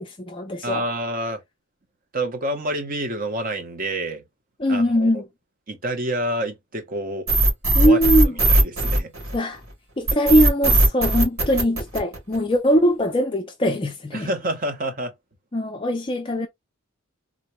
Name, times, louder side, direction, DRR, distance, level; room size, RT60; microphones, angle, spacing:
voice 1, 0.0-0.9 4.6-5.3 7.7-8.4 9.3-9.6 10.0-14.3 15.5-16.5, equal, 25° left, 0.4 m, -21 dB
voice 2, 0.6-1.4 2.1-4.2 4.7-5.1 5.7-7.3 7.8-8.0 8.5-9.1 14.1-15.1, right 1 dB, 40° right, 0.8 m, -28 dB
sound 1, 7.3-9.5 10.1-12.5, right 1 dB, 80° right, 2.3 m, -18 dB
3.8 x 2.3 x 2.9 m
head